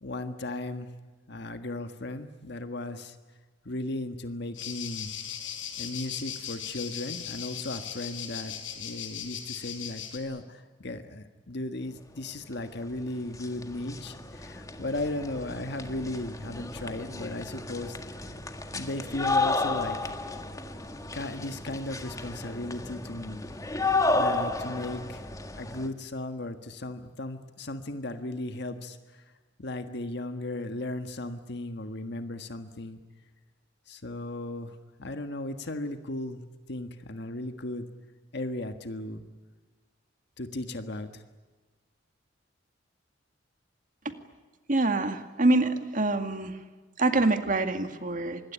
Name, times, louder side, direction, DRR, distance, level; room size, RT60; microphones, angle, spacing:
voice 1, 0.0-0.9 1.3-3.2 3.6-5.1 5.8-18.3 18.7-20.1 21.1-23.4 24.1-25.2 25.5-29.2 29.6-33.0 33.9-37.9 38.3-39.2 40.4-41.2, left 2 dB, 60° left, 7 dB, 1.6 m, -36 dB
sound 1, 4.5-10.2, left 9 dB, 90° left, 4.8 m, -38 dB
sound 2, 12.8-12.9 13.2-25.9, left 3 dB, 20° left, 1.7 m, -32 dB
voice 2, 44.7-46.6 47.0-48.5, right 2 dB, 45° right, 7 dB, 2.1 m, -26 dB
26.0 x 21.0 x 9.9 m, 1.3 s
head